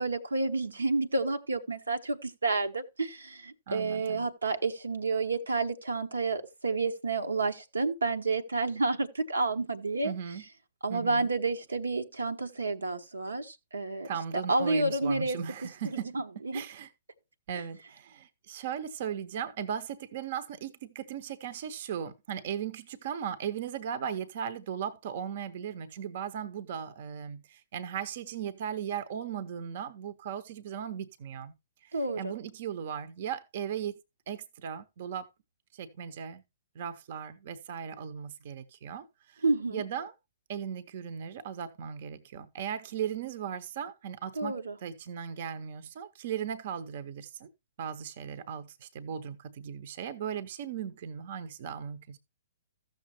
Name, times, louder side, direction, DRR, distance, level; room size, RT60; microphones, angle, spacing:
voice 1, 0.0-10.1 10.8-14.1 14.5-15.4 15.9-16.6 31.9-32.3 39.4-39.8 44.4-44.8, right 3 dB, 85° right, 0.9 m, -30 dB
voice 2, 3.7-4.3 10.0-10.4 10.9-11.3 14.0-16.2 16.5-16.9 17.5-31.5 31.8-33.9 34.3-35.3 35.7-36.4 36.7-39.4 39.7-40.1 40.5-47.5 47.8-52.2, right 8 dB, 50° right, 0.8 m, -37 dB
14.5 x 6.6 x 2.9 m
figure-of-eight pair, 120°, 0 cm